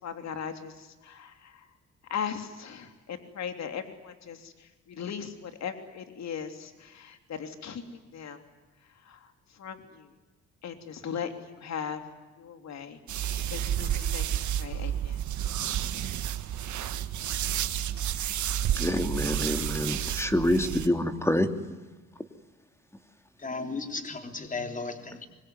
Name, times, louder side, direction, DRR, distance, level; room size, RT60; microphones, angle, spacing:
voice 1, 0.0-0.7 1.0-1.3 2.1-4.5 4.9-7.8 8.1-8.4 9.1-9.2 9.6-9.8 10.6-12.0 12.4-15.2, left 7 dB, 60° left, 7 dB, 3.3 m, -38 dB
sound 1, 13.1-20.9, right 10 dB, 70° right, 1.7 m, -30 dB
voice 2, 18.8-21.5, left 1 dB, 10° left, 7 dB, 2.7 m, -26 dB
voice 3, 23.4-25.3, left 3 dB, 25° left, 6 dB, 3.4 m, -35 dB
25.0 x 23.0 x 9.6 m, 1.1 s
cardioid pair, 90°, 30 cm